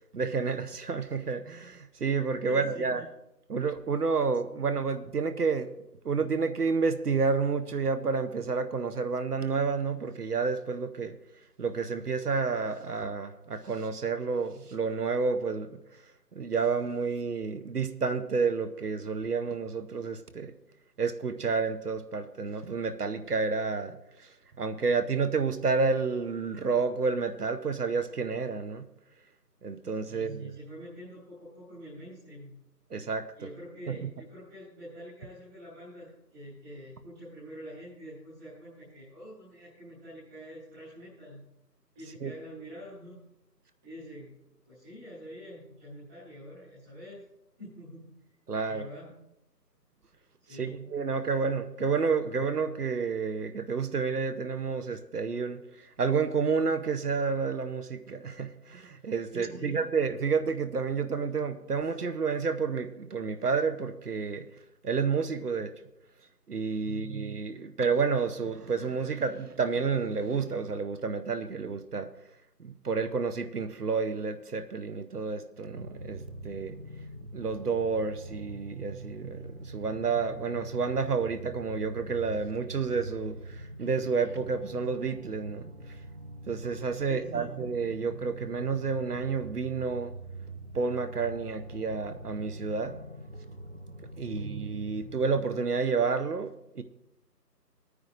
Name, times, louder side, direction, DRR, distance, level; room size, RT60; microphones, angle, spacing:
voice 1, 0.1-3.1 3.5-5.7 6.0-11.2 11.6-15.8 16.3-20.5 21.0-24.3 24.6-28.8 29.6-30.5 32.9-33.3 33.9-34.1 42.2-42.3 48.5-48.9 50.5-64.5 64.8-65.8 66.5-72.1 72.6-76.8 77.3-85.7 86.5-90.1 90.7-93.0 94.2-96.8, right 5 dB, 65° right, 0.8 m, -30 dB
voice 2, 2.4-3.1 30.1-32.5 33.4-41.5 41.9-43.2 43.8-44.3 44.6-47.2 47.6-48.2 48.6-49.1 50.5-50.9 59.3-59.8 66.8-67.2 87.0-87.5 94.2-94.6, equal, 5° right, 1.2 m, -46 dB
sound 1, 75.6-95.4, right 2 dB, 45° right, 0.5 m, -44 dB
19.5 x 9.5 x 2.5 m
figure-of-eight pair, 165°, 50 cm